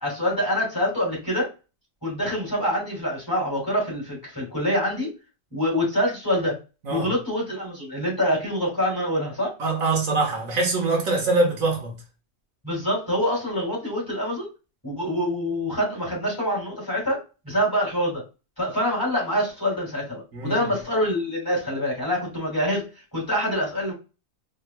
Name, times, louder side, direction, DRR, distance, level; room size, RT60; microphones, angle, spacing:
voice 1, 0.0-1.5 2.0-5.1 5.5-6.6 6.9-9.5 12.6-14.5 14.8-18.2 18.6-22.9 23.1-23.9, equal, 15° left, 2.7 m, -25 dB
voice 2, 9.6-12.0 20.3-20.7, right 3 dB, 75° right, 1.7 m, -23 dB
4.3 x 4.1 x 2.3 m
omnidirectional pair, 1.4 m